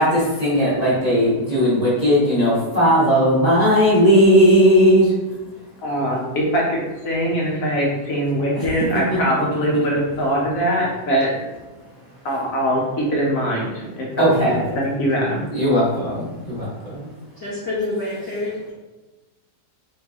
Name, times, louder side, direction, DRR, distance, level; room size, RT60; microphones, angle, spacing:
voice 1, 0.0-5.1 8.5-8.7 9.1-9.2 14.2-14.7 15.5-17.1, equal, 25° right, -9 dB, 1.1 m, -17 dB
voice 2, 5.8-6.8 7.0-11.3 12.2-14.1 14.8-15.5, equal, 60° left, -3 dB, 1.1 m, -22 dB
voice 3, 17.4-18.7, left 2 dB, 20° left, -10 dB, 0.7 m, -27 dB
4.5 x 3.1 x 2.8 m, 1.1 s
omnidirectional pair, 1.7 m